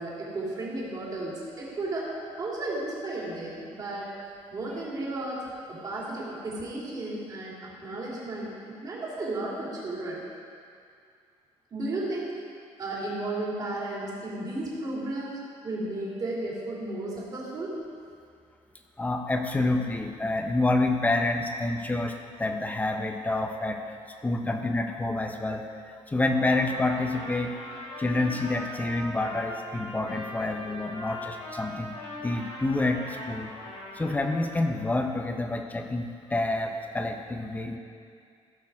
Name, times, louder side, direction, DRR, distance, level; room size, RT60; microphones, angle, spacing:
voice 1, 0.0-4.1 4.5-5.4 5.7-10.2 11.7-12.4 12.8-17.8, right 2 dB, 35° right, -5 dB, 2.8 m, -34 dB
voice 2, 19.0-24.0 24.2-27.5 28.0-32.0 32.2-33.5 33.9-37.8, left 2 dB, 15° left, 5 dB, 0.7 m, -28 dB
Trumpet, 26.2-34.7, left 1 dB, 85° left, 3.1 m, -41 dB
16.0 x 6.6 x 4.8 m, 2.3 s
cardioid pair, 165°, 12 cm